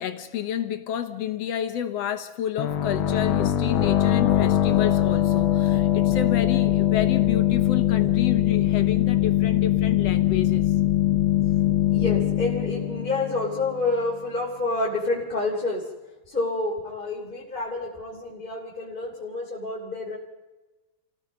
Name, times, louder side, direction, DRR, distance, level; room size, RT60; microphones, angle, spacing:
voice 1, 0.0-10.7, left 10 dB, 60° left, 8 dB, 1.9 m, -30 dB
sound 1, 2.6-14.0, left 13 dB, 85° left, 1.1 m, -22 dB
voice 2, 11.9-15.9 16.3-20.2, left 2 dB, 15° left, -5 dB, 3.1 m, -28 dB
29.0 x 17.5 x 5.3 m, 1.1 s
omnidirectional pair, 3.6 m